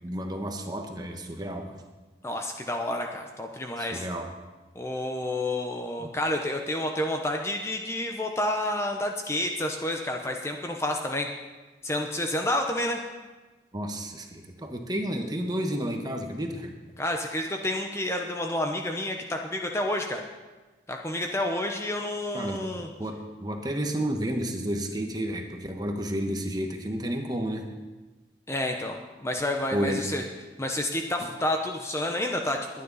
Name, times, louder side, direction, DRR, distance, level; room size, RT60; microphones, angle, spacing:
voice 1, 0.0-1.8 3.8-4.3 6.0-6.1 13.7-16.7 22.3-22.6 23.0-27.7 29.7-30.1 31.2-31.3, equal, 20° right, 3 dB, 1.2 m, -31 dB
voice 2, 2.2-4.0 4.7-11.3 11.8-13.0 17.0-20.2 20.9-22.9 28.5-30.2 30.6-32.8, left 1 dB, 15° left, 3 dB, 0.8 m, -29 dB
21.5 x 9.6 x 4.1 m, 1.2 s
head